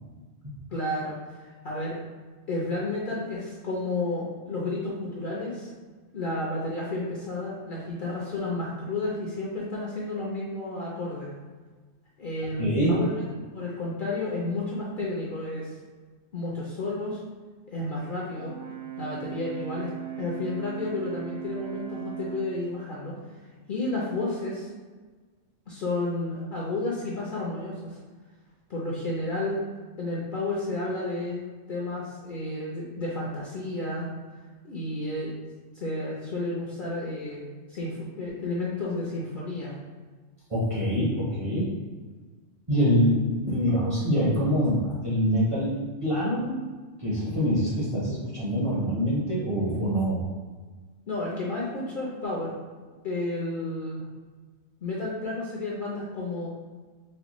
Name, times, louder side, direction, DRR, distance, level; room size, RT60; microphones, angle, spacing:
voice 1, 0.7-2.0 2.5-5.7 6.1-11.3 12.2-13.2 13.5-15.7 16.3-17.2 17.7-18.6 19.0-19.9 20.2-23.2 23.7-24.7 25.7-28.0 28.7-29.5 30.0-31.4 31.7-34.1 34.6-35.3 35.7-39.8 51.1-52.5 53.0-54.0 54.8-56.5, left 2 dB, 50° left, -5 dB, 0.7 m, -31 dB
voice 2, 12.6-13.0 40.5-41.7 42.7-46.6 47.0-50.3, equal, 30° right, -8 dB, 0.7 m, -25 dB
Brass instrument, 18.3-22.6, right 13 dB, 75° right, 0.9 m, -38 dB
4.3 x 2.2 x 3.0 m, 1.4 s
omnidirectional pair, 1.3 m